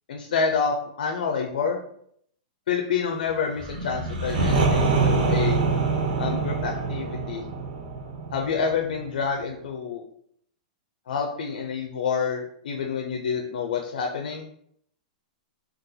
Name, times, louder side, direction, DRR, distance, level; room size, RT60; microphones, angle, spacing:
voice 1, 0.1-1.8 2.7-5.6 6.2-7.4 8.3-10.0 11.1-14.5, left 6 dB, 85° left, 1 dB, 0.4 m, -28 dB
sound 1, 3.5-9.3, right 4 dB, 75° right, 0.7 m, -25 dB
3.8 x 2.3 x 2.7 m, 0.68 s
supercardioid pair, 160°, 5 cm